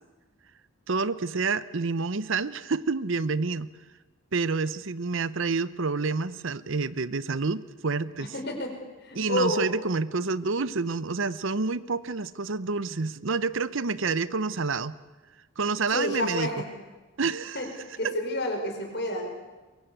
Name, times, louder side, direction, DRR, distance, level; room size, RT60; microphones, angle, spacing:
voice 1, 0.9-3.7 4.3-8.3 9.1-14.9 15.6-16.5 17.2-17.6, right 4 dB, 65° right, 17 dB, 0.8 m, -28 dB
voice 2, 8.3-8.7 9.0-9.7 15.9-16.7 17.5-17.7 18.0-19.3, left 1 dB, 50° left, 4 dB, 5.0 m, -29 dB
23.5 x 22.5 x 8.2 m, 1.2 s
head